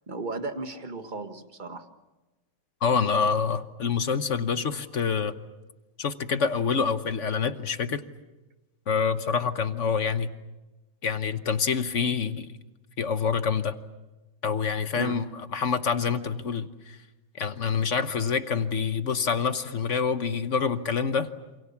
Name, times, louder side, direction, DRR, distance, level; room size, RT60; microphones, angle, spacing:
voice 1, 0.1-1.9 14.9-15.2, right 3 dB, 25° right, 7 dB, 1.6 m, -35 dB
voice 2, 2.8-5.4 6.0-8.0 8.9-10.3 11.0-12.5 13.0-13.8 14.4-17.0 17.4-21.3, left 6 dB, 45° left, 10 dB, 1.1 m, -26 dB
28.0 x 27.5 x 7.1 m, 1.1 s
omnidirectional pair, 2.2 m